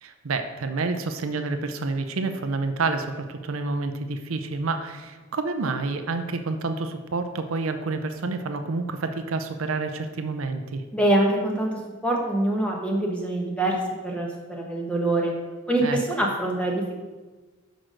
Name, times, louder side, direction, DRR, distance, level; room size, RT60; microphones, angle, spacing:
voice 1, 0.0-10.8 15.8-16.0, right 3 dB, 75° right, 7 dB, 0.6 m, -29 dB
voice 2, 10.9-11.7 12.0-15.3 15.7-16.9, right 1 dB, 5° left, -1 dB, 1.1 m, -24 dB
6.1 x 5.1 x 6.3 m, 1.3 s
head